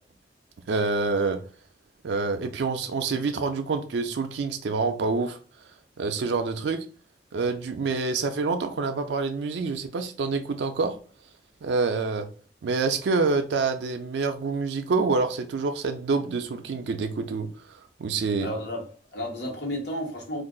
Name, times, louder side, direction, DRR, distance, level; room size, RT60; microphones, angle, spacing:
voice 1, 0.7-1.4 2.0-5.4 6.0-6.8 7.3-11.0 11.6-12.3 12.6-18.5, right 4 dB, 85° right, 0.4 m, -27 dB
voice 2, 18.4-20.4, equal, 85° left, 1.2 m, -32 dB
2.5 x 2.3 x 3.7 m
head